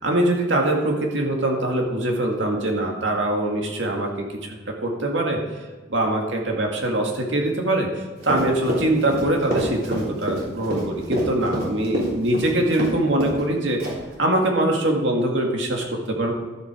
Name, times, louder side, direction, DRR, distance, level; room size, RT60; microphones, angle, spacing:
voice 1, 0.0-5.4 5.9-13.8 14.2-16.3, right 1 dB, 70° right, 1 dB, 2.1 m, -23 dB
Run, 8.2-12.9 13.2-13.4 13.8-14.1, equal, 50° right, 3.3 m, -27 dB
12.5 x 7.7 x 5.0 m, 1.2 s
head